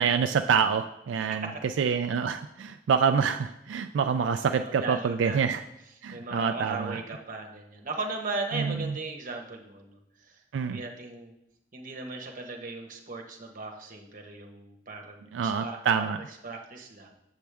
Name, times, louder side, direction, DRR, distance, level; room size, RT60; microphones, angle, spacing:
voice 1, 0.0-1.5 1.8-5.6 6.0-7.0 8.5-8.8 10.5-10.8 15.3-16.2, right 6 dB, 90° right, 8 dB, 0.3 m, -26 dB
voice 2, 1.3-1.9 4.6-5.6 6.1-11.3 11.7-17.1, right 3 dB, 50° right, 2 dB, 1.1 m, -38 dB
7.3 x 7.1 x 3.4 m, 0.82 s
head